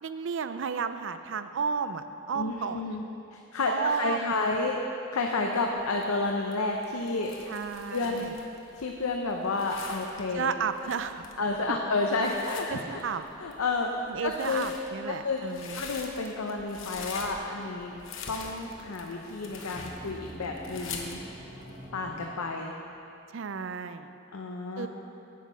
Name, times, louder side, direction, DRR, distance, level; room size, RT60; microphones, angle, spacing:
voice 1, 0.0-2.8 3.7-4.3 7.5-8.3 10.3-11.3 12.7-13.2 14.1-15.8 23.3-24.1 24.8-24.9, right 6 dB, 60° right, 11 dB, 0.4 m, -32 dB
voice 2, 2.3-3.0 3.3-4.8 5.1-7.3 7.9-8.4 8.7-10.5 11.4-13.0 13.4-14.7 15.1-15.4 15.7-17.9 18.3-21.2 21.9-22.7 24.3-24.9, left 3 dB, 85° left, 1 dB, 0.7 m, -30 dB
sound 1, 5.7-21.9, left 5 dB, 60° left, 1.0 m, -44 dB
sound 2, 17.3-22.9, equal, 30° right, 2.4 m, -47 dB
9.3 x 8.1 x 5.6 m, 2.8 s
head